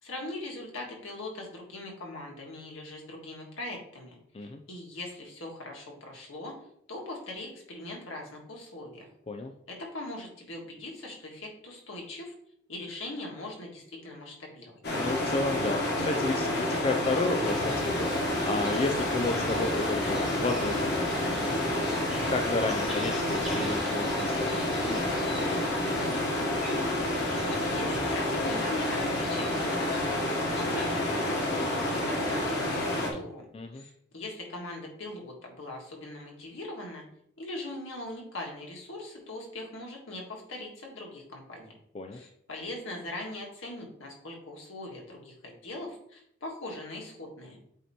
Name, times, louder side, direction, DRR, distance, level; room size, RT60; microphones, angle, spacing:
voice 1, 0.0-6.5 6.9-9.1 9.7-12.3 12.7-14.8 27.4-30.1 30.5-33.4 33.7-37.0 37.4-41.7 42.1-47.6, left 2 dB, 75° left, 0 dB, 1.7 m, -41 dB
sound 1, 14.8-33.1, left 1 dB, 55° left, 1.3 m, -29 dB
voice 2, 15.0-21.9 22.3-26.1 33.5-33.8 41.9-42.2, left 3 dB, 30° left, 4 dB, 0.3 m, -33 dB
sound 2, 17.4-32.5, equal, 5° right, 1.3 m, -43 dB
8.1 x 2.9 x 4.3 m, 0.71 s
head